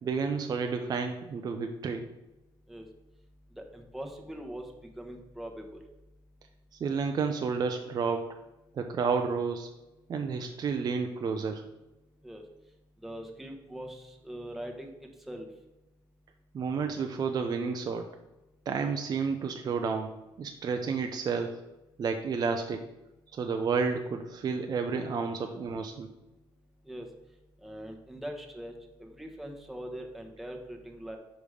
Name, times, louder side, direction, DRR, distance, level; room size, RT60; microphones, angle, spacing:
voice 1, 0.0-2.1 6.8-8.4 8.7-9.7 10.1-11.6 16.5-18.1 18.7-20.1 20.4-21.6 22.0-22.8 23.3-26.1, right 5 dB, 45° right, 5 dB, 0.5 m, -31 dB
voice 2, 3.5-5.8 12.2-12.4 13.0-15.5 26.9-27.1 27.6-28.7 29.0-31.2, right 1 dB, 5° right, 2 dB, 1.0 m, -42 dB
5.1 x 5.1 x 4.9 m, 1.0 s
cardioid pair, 100°, 10 cm